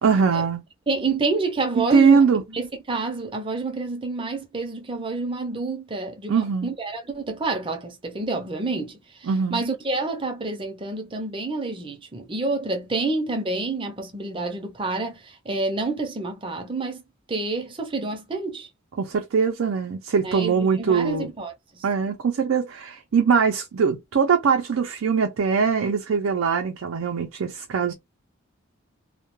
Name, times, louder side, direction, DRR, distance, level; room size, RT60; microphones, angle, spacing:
voice 1, 0.0-0.7 1.8-2.4 6.3-6.7 9.3-9.6 19.0-21.3 21.8-27.9, right 5 dB, 80° right, 0.5 m, -21 dB
voice 2, 0.9-2.2 2.5-17.0 17.3-18.7 20.2-21.8, right 3 dB, 25° right, 0.5 m, -28 dB
2.2 x 2.1 x 3.0 m
head